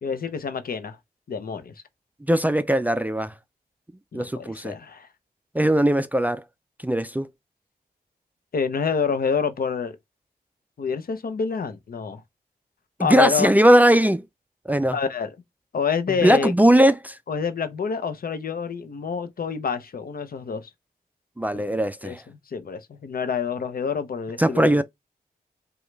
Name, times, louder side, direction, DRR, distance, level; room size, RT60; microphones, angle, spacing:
voice 1, 0.0-1.0 1.3-1.7 4.1-5.1 8.5-10.0 10.8-12.2 13.0-13.5 14.9-15.3 15.7-16.5 17.3-20.7 21.5-21.6 22.0-24.8, left 6 dB, 65° left, 0.7 m, -27 dB
voice 2, 2.3-3.3 4.1-4.7 5.5-6.4 6.8-7.3 13.0-14.2 14.7-15.0 16.2-17.2 21.4-22.2 24.4-24.8, right 1 dB, 10° right, 0.4 m, -19 dB
4.9 x 2.3 x 3.2 m
cardioid pair, 60°, 16 cm